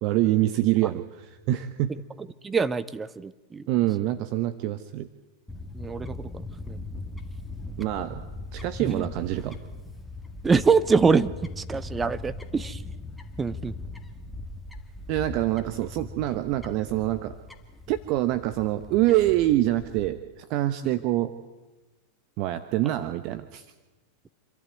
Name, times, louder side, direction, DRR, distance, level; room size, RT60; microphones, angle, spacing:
voice 1, 0.0-1.9 3.7-5.1 7.8-8.2 8.5-9.6 15.1-17.3 17.9-21.3 22.4-23.7, right 15 dB, 50° right, 11 dB, 0.9 m, -25 dB
voice 2, 2.2-3.6 5.7-6.8 8.8-9.1 10.4-12.8 13.4-13.7, right 5 dB, 20° right, 16 dB, 0.7 m, -25 dB
Fowl / Bird, 5.5-20.1, left 2 dB, 5° left, 1.8 m, -40 dB
27.0 x 11.5 x 9.2 m, 1.2 s
hypercardioid pair, 95°, 0 cm